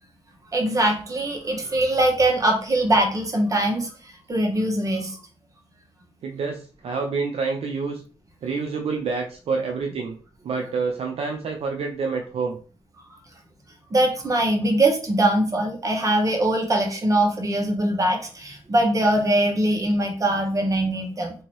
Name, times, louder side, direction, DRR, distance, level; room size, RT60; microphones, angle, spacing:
voice 1, 0.5-3.9 4.3-5.1 13.9-21.3, right 1 dB, 30° right, 2 dB, 0.9 m, -22 dB
voice 2, 6.2-8.0 8.4-10.2 10.4-12.6, right 4 dB, 60° right, 2 dB, 0.4 m, -27 dB
2.8 x 2.6 x 3.0 m, 0.41 s
cardioid pair, 80°, 11 cm